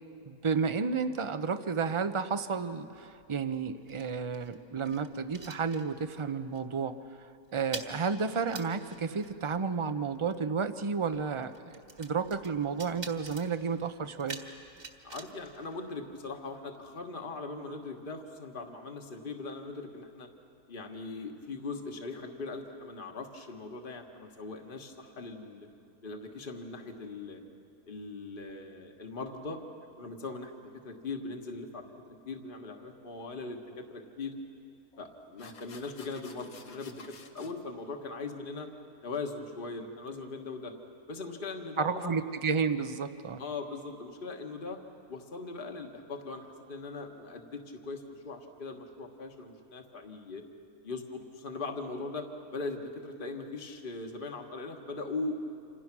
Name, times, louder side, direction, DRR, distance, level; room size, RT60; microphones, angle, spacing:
voice 1, 0.3-11.5 12.0-14.4 41.8-43.4, right 5 dB, 30° right, 10 dB, 0.6 m, -32 dB
sound 1, 2.9-6.3 6.5-6.8 7.1-16.5, right 3 dB, 50° right, 2.1 m, -48 dB
voice 2, 15.0-20.3 20.7-25.7 26.0-27.4 27.8-29.6 30.0-34.4 35.0-38.7 39.0-40.7 41.1-42.2 43.4-44.8 45.1-50.4 50.8-52.3 52.5-55.4, left 3 dB, 35° left, 4 dB, 1.7 m, -40 dB
sound 2, 33.7-33.8 34.9-35.0 35.4-37.5, left 4 dB, 75° left, 1.8 m, -52 dB
28.0 x 27.0 x 6.1 m, 2.7 s
omnidirectional pair, 1.5 m